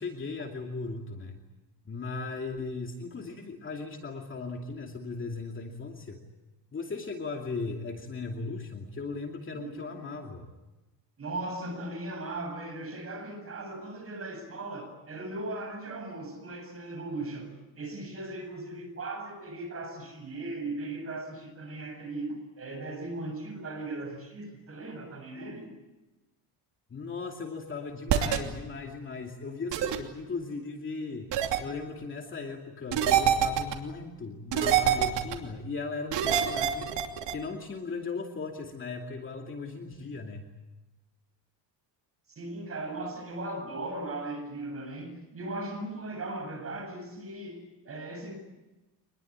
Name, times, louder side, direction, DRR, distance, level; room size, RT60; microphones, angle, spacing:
voice 1, 0.0-1.4 1.8-6.2 6.7-10.5 26.9-31.3 31.6-36.9 37.3-40.5, left 4 dB, 25° left, 2 dB, 2.6 m, -37 dB
voice 2, 9.5-10.0 11.2-25.7 42.4-48.4, right 2 dB, 30° right, 5 dB, 7.5 m, -38 dB
sound 1, 28.1-28.4 29.7-30.0 31.3-31.6 32.9-33.7 34.5-35.4 36.1-37.3, right 10 dB, 65° right, 3.0 m, -25 dB
25.5 x 21.0 x 8.8 m, 1.1 s
cardioid pair, 155°, 45 cm